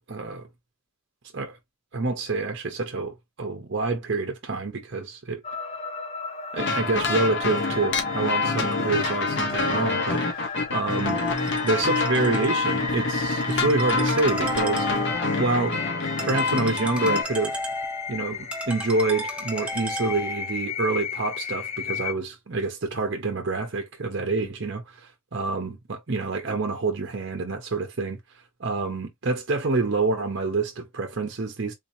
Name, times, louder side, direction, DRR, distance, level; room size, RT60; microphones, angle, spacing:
voice 1, 0.1-0.5 1.3-1.6 1.9-5.4 6.5-11.2 11.6-14.9 15.4-15.8 16.2-17.6 18.1-28.2 28.6-31.7, right 3 dB, 60° right, 0.8 m, -27 dB
sound 1, 5.4-22.1, left 5 dB, 30° left, 0.6 m, -35 dB
sound 2, 6.6-17.2, left 3 dB, 60° left, 1.0 m, -26 dB
Ringtone, 11.0-20.5, equal, 5° right, 0.7 m, -36 dB
3.9 x 2.9 x 2.7 m
head